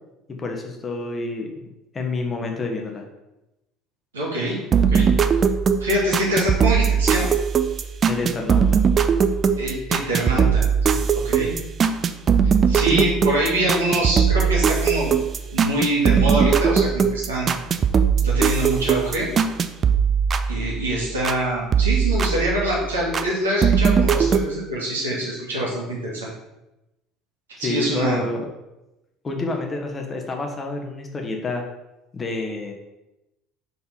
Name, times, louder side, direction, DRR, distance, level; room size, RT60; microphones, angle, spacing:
voice 1, 0.3-1.7 1.9-3.0 8.1-8.6 12.9-13.0 27.6-28.4 29.2-31.6 32.1-32.7, left 2 dB, 25° left, 2 dB, 1.1 m, -28 dB
voice 2, 4.1-5.1 5.8-7.4 9.6-11.0 11.2-11.5 12.4-15.1 15.5-17.5 18.2-19.3 20.5-26.3 27.6-28.2, right 1 dB, 75° right, -4 dB, 1.7 m, -25 dB
sound 1, 4.7-21.4 21.7-23.3 23.6-24.5, right 6 dB, 35° right, 0.4 m, -20 dB
4.3 x 4.1 x 5.5 m, 0.96 s
figure-of-eight pair, 60°, 0 cm